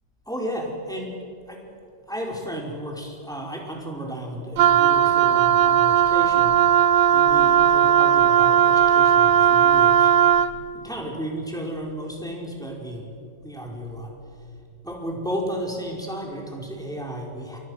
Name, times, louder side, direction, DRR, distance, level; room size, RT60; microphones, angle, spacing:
voice 1, 0.3-1.1 1.5-1.6 2.1-10.5 10.7-14.4 14.8-17.6, equal, ahead, -1 dB, 4.5 m, -33 dB
Wind instrument woodwind instrument, 4.6-10.6, right 9 dB, 80° right, 1.4 m, -17 dB
28.5 x 23.5 x 6.4 m, 2.4 s
omnidirectional pair, 2.0 m